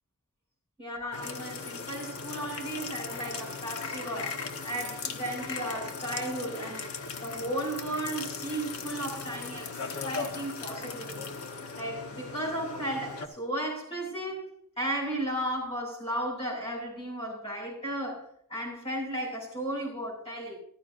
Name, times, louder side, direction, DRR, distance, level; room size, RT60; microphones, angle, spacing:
voice 1, 0.8-11.3 11.7-20.6, right 1 dB, 25° left, 6.5 m, -35 dB
sound 1, 1.1-13.3, left 4 dB, 80° left, 1.3 m, -38 dB
15.0 x 13.5 x 2.7 m
head